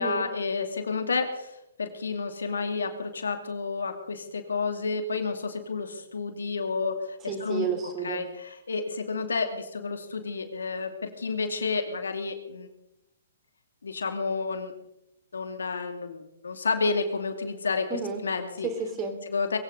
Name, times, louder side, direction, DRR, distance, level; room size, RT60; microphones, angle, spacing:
voice 1, 0.0-7.7 8.0-12.7 13.8-14.7 15.3-17.9 18.2-18.7 19.3-19.6, left 4 dB, 75° left, 7 dB, 2.6 m, -30 dB
voice 2, 7.3-8.2 17.9-18.2 18.6-19.2, right 5 dB, 20° right, 5 dB, 3.7 m, -31 dB
22.5 x 16.0 x 4.0 m, 0.83 s
hypercardioid pair, 125°, 0 cm